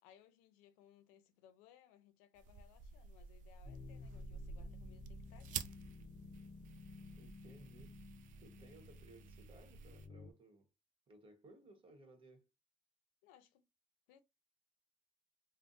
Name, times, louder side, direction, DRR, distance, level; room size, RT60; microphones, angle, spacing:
voice 1, 0.0-5.7 13.2-13.7 14.1-14.2, left 10 dB, 90° left, 0.5 m, -65 dB
sound 1, 2.4-10.1, right 6 dB, 65° right, 0.4 m, -50 dB
sound 2, 3.6-10.3, left 4 dB, 40° left, 0.4 m, -55 dB
voice 2, 7.1-8.0 8.4-10.7 11.1-12.5, right 2 dB, 40° right, 1.2 m, -61 dB
3.4 x 2.1 x 2.6 m
supercardioid pair, 80°, 14 cm